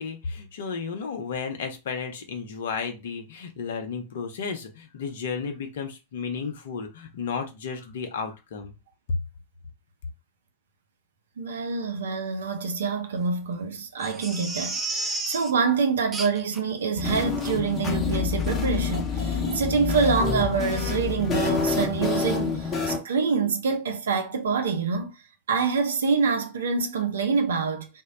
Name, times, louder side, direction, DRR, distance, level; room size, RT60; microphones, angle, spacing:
voice 1, 0.0-8.7, left 5 dB, 60° left, 0.6 m, -33 dB
voice 2, 11.4-25.1 25.5-28.0, right 5 dB, 65° right, 0.4 m, -26 dB
Crying sobbing, 14.0-15.5 16.1-16.6 17.0-17.1 17.4-17.5 18.0-18.2 18.4-18.5, right 3 dB, 15° right, 0.5 m, -32 dB
sound 1, 17.0-23.0, left 5 dB, 25° left, 0.8 m, -27 dB
2.1 x 2.0 x 3.7 m
figure-of-eight pair, 90°, 0 cm